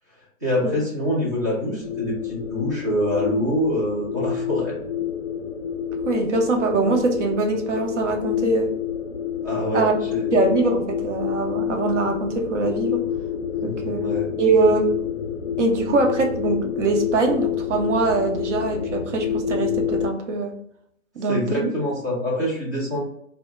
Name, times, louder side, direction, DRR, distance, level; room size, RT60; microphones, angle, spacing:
voice 1, 0.4-4.8 9.4-10.5 13.5-14.3 21.3-23.0, equal, 15° right, -6 dB, 0.4 m, -25 dB
sound 1, 1.8-20.1, left 8 dB, 70° left, 0.5 m, -28 dB
voice 2, 6.0-8.7 9.7-10.0 10.3-13.0 13.6-14.0 14.4-14.9 15.6-20.5 21.2-21.7, right 3 dB, 60° right, 3 dB, 0.8 m, -22 dB
2.2 x 2.0 x 3.0 m, 0.70 s
figure-of-eight pair, 135°, 40 cm